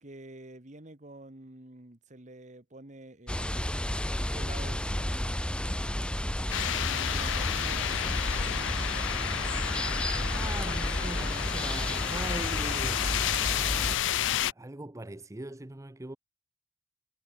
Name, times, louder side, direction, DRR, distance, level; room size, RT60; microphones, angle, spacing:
voice 1, 0.0-5.2 6.8-9.2, right 2 dB, 40° right, 1.8 m, -48 dB
sound 1, 3.3-14.0, left 1 dB, 5° left, 1.1 m, -32 dB
sound 2, 6.5-14.5, left 11 dB, 75° left, 0.4 m, -31 dB
voice 2, 10.3-13.2 14.5-16.2, right 1 dB, 15° right, 0.7 m, -40 dB
head